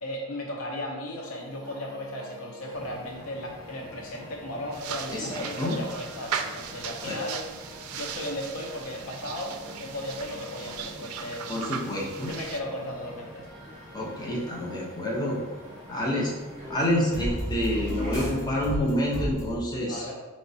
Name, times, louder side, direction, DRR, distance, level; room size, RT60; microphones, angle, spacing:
voice 1, 0.0-7.4 7.9-11.6 12.3-13.5 19.8-20.1, left 1 dB, 75° left, 1 dB, 0.6 m, -36 dB
sound 1, 1.2-19.6, equal, 5° right, 1.4 m, -41 dB
sound 2, 2.7-18.3, equal, 30° right, 1.3 m, -45 dB
sound 3, 4.7-12.6, right 7 dB, 85° right, 0.3 m, -38 dB
voice 2, 5.1-5.8 7.0-7.2 11.5-12.3 13.9-15.4 15.9-16.3 16.7-20.1, left 1 dB, 20° left, -4 dB, 0.7 m, -28 dB
4.5 x 3.1 x 2.7 m, 1.2 s
head